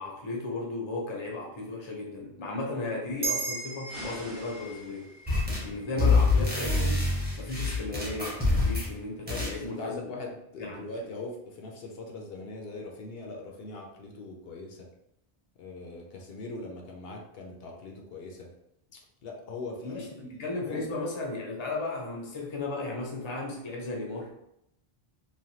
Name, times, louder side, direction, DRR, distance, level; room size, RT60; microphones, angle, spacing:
voice 1, 0.0-5.1 5.6-10.0 10.6-10.9 19.8-20.1 20.4-24.3, left 2 dB, 35° left, -1 dB, 0.6 m, -35 dB
sound 1, 3.2-7.9, right 4 dB, 40° right, 0.3 m, -38 dB
sound 2, 3.9-5.5, right 1 dB, 60° right, 1.0 m, -46 dB
sound 3, 5.3-5.7 6.0-8.9 9.3-9.6, left 3 dB, 10° right, 0.8 m, -26 dB
voice 2, 9.3-14.9 15.6-18.5 18.9-20.9, left 2 dB, 70° left, 1 dB, 0.8 m, -41 dB
3.1 x 2.2 x 2.7 m, 0.79 s
omnidirectional pair, 1.0 m